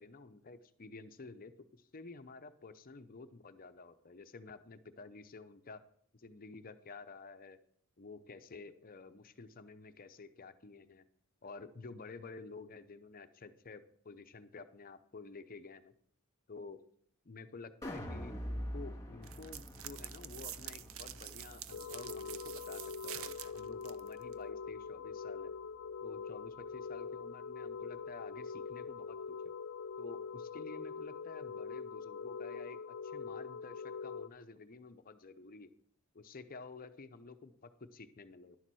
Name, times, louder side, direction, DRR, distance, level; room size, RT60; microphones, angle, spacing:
voice 1, 0.0-5.8 6.1-7.6 8.0-11.1 11.4-15.9 16.5-16.8 17.2-25.5 26.0-29.5 30.0-35.7 36.1-38.6, left 3 dB, 40° left, 10 dB, 0.7 m, -51 dB
sound 1, 17.8-24.0 24.4-24.5, equal, 15° left, 2.5 m, -46 dB
sound 2, 19.2-24.3, right 12 dB, 65° right, 0.5 m, -47 dB
sound 3, 21.7-34.3, left 5 dB, 80° left, 0.6 m, -43 dB
11.0 x 7.2 x 6.1 m, 0.64 s
head